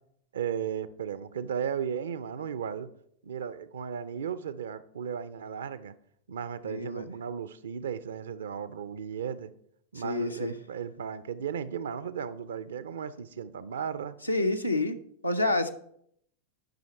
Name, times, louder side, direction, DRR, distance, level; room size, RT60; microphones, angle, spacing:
voice 1, 0.3-2.9 3.2-5.9 6.3-9.5 9.9-14.2, right 8 dB, 65° right, 14 dB, 0.5 m, -35 dB
voice 2, 6.6-7.1 10.0-10.5 14.3-15.0 15.2-15.7, left 2 dB, 90° left, 5 dB, 0.7 m, -28 dB
10.5 x 5.7 x 4.4 m, 0.69 s
figure-of-eight pair, 90°, 0 cm